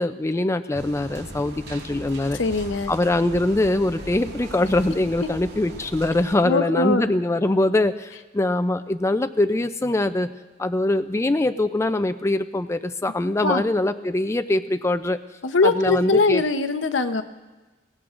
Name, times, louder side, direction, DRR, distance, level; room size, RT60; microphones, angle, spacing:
voice 1, 0.0-2.4 2.9-10.3 10.6-15.2 15.6-16.4, left 2 dB, 15° left, 9 dB, 0.4 m, -23 dB
sound 1, 0.7-6.4, right 1 dB, 65° right, 2.0 m, -39 dB
voice 2, 2.3-2.9 6.4-7.0 13.4-13.6 15.4-17.2, left 3 dB, 80° left, 9 dB, 0.8 m, -21 dB
22.5 x 17.5 x 2.5 m, 1.2 s
head